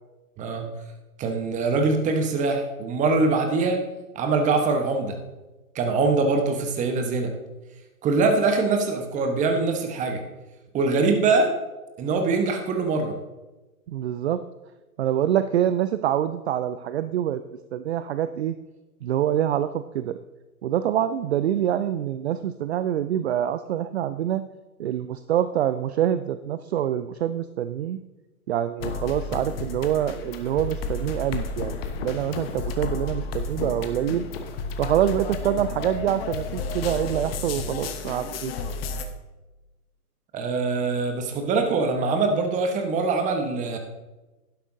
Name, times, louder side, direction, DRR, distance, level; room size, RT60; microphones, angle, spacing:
voice 1, 0.4-0.7 1.2-3.9 4.1-5.2 5.7-7.3 8.0-10.2 10.7-11.5 12.0-13.2 40.3-43.8, right 3 dB, 15° right, 5 dB, 1.2 m, -23 dB
voice 2, 13.9-14.4 15.0-17.4 17.7-18.5 19.0-20.2 20.6-24.4 24.8-28.0 28.5-31.7 32.0-34.2 34.8-38.5, right 10 dB, 50° right, 12 dB, 0.5 m, -25 dB
sound 1, 28.8-39.0, left 3 dB, 40° left, 1.2 m, -32 dB
11.5 x 11.0 x 2.7 m, 1.1 s
hypercardioid pair, 125°, 45 cm